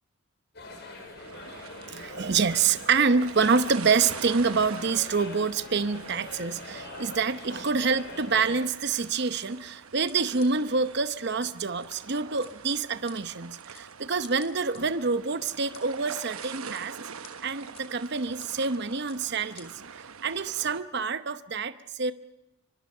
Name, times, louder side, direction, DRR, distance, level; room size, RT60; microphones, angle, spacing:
sound 1, 0.5-8.7, left 2 dB, 50° left, 5.7 m, -43 dB
sound 2, 1.2-20.8, right 6 dB, 85° right, 1.0 m, -45 dB
voice 1, 1.9-17.0 17.4-22.1, right 5 dB, 50° right, 12 dB, 0.8 m, -27 dB
sound 3, 9.1-9.5 10.1-10.2 10.4-10.5 11.1-11.5 11.9-12.0 12.4-12.5 13.1-13.2 13.7-13.9 14.2-14.8 15.4-15.8 16.4-16.8 17.2-17.3 17.7-17.9 18.4-18.5 19.1-19.2 19.6-19.7, left 6 dB, 30° left, 3.5 m, -49 dB
24.5 x 24.0 x 5.5 m, 0.93 s
head